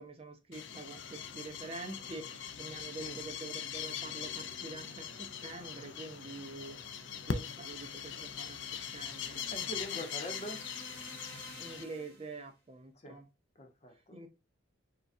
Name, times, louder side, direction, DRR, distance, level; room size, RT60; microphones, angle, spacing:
voice 1, 0.0-6.8 7.3-8.6 8.9-9.5 11.6-13.3 14.1-14.3, right 3 dB, 30° right, 0.5 m, -46 dB
sound 1, 0.5-11.8, left 8 dB, 60° left, 0.4 m, -41 dB
sound 2, 1.0-10.3, right 4 dB, 85° right, 0.6 m, -60 dB
sound 3, 7.6-12.4, right 1 dB, 50° right, 2.0 m, -53 dB
voice 2, 9.5-10.6 13.0-13.2 13.6-14.2, equal, 35° left, 0.9 m, -43 dB
6.4 x 2.3 x 2.6 m
head